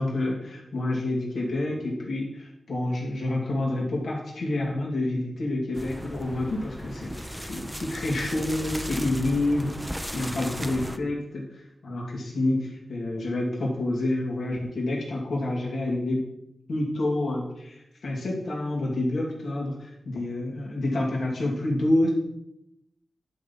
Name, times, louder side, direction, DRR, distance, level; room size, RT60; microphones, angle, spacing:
voice 1, 0.0-16.2 16.7-22.1, left 1 dB, 80° left, -3 dB, 2.6 m, -28 dB
sound 1, 5.7-11.0, equal, 5° right, 0.7 m, -36 dB
10.5 x 4.6 x 5.4 m, 0.83 s
cardioid pair, 65°, 0 cm